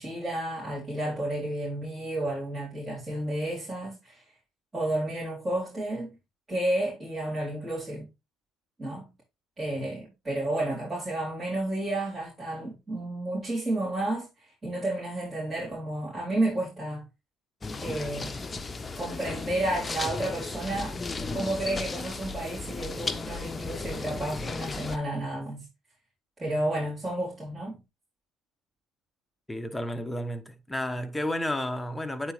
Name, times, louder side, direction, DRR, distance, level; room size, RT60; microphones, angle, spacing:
voice 1, 0.0-4.2 4.7-6.1 6.5-8.1 8.8-9.1 9.6-17.0 17.8-18.3 19.0-21.0 21.3-25.6 26.4-27.8, right 1 dB, 20° right, 3.9 m, -31 dB
sound 1, 17.6-25.0, left 3 dB, 25° left, 0.9 m, -35 dB
voice 2, 29.5-32.3, left 1 dB, 10° left, 1.1 m, -32 dB
8.7 x 4.1 x 3.2 m
hypercardioid pair, 65°, 0 cm